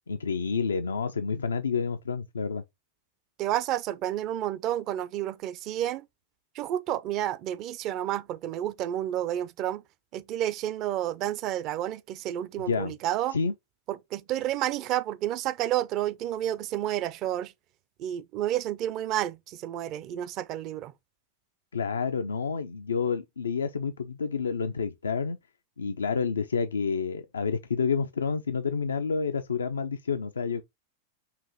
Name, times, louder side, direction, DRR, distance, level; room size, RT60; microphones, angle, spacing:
voice 1, 0.1-2.6 12.7-12.9 13.3-13.5 21.7-25.4 25.8-30.6, left 5 dB, 85° left, 0.4 m, -29 dB
voice 2, 3.4-6.1 6.5-9.8 10.1-13.4 13.9-17.5 18.0-20.9, right 12 dB, 45° right, 0.5 m, -30 dB
5.7 x 2.5 x 3.0 m
hypercardioid pair, 95°, 0 cm